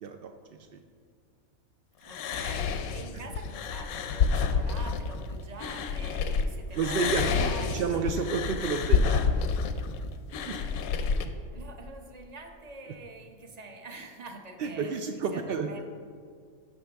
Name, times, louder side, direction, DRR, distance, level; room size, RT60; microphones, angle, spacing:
voice 1, 0.0-0.3 0.7-0.8 6.8-9.2 10.5-10.6 14.6-15.8, right 5 dB, 75° right, 5 dB, 0.5 m, -30 dB
voice 2, 2.0-8.2 11.5-15.8, right 2 dB, 35° right, 4 dB, 0.8 m, -45 dB
sound 1, 2.1-6.4 6.8-11.3, left 5 dB, 85° left, 1.1 m, -28 dB
11.5 x 6.8 x 3.4 m, 2.1 s
omnidirectional pair, 1.5 m